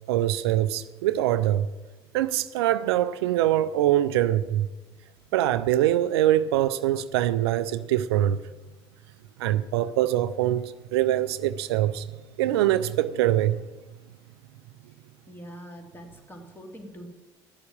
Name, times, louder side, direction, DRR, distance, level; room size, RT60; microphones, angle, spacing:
voice 1, 0.1-1.7 2.1-4.7 5.3-8.4 9.4-12.0 12.4-13.6, right 13 dB, 75° right, 0.5 m, -23 dB
voice 2, 15.3-17.1, equal, 15° left, 3.1 m, -43 dB
13.5 x 6.9 x 8.7 m
hypercardioid pair, 60°, 13 cm